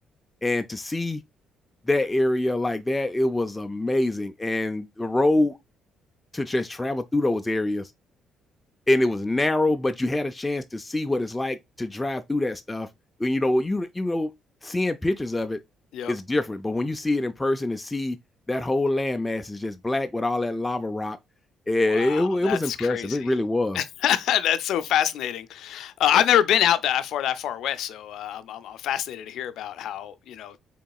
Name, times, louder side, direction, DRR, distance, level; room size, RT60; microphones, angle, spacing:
voice 1, 0.4-1.2 1.9-5.6 6.3-7.9 8.9-12.9 13.2-14.3 14.6-15.6 16.1-18.2 18.5-21.2 21.7-23.8, left 2 dB, 10° left, 0.3 m, -25 dB
voice 2, 21.9-23.3 23.7-30.6, left 11 dB, 75° left, 0.4 m, -25 dB
3.9 x 3.6 x 2.2 m
cardioid pair, 110°, 0 cm